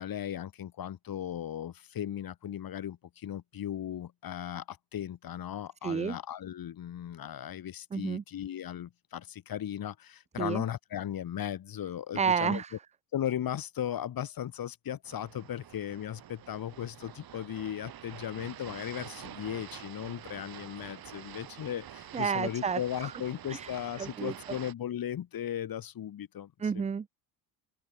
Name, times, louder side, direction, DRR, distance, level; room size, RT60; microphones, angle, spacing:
voice 1, 0.0-12.6 13.1-26.8, left 10 dB, 50° left, 2.9 m, -37 dB
voice 2, 5.8-6.2 7.9-8.2 10.4-10.6 12.1-12.7 22.1-23.1 23.5-23.7 24.0-24.3 26.6-27.1, right 6 dB, 15° right, 0.4 m, -30 dB
sound 1, 15.0-24.7, right 11 dB, 50° right, 3.0 m, -47 dB
open air
cardioid pair, 100°, 45 cm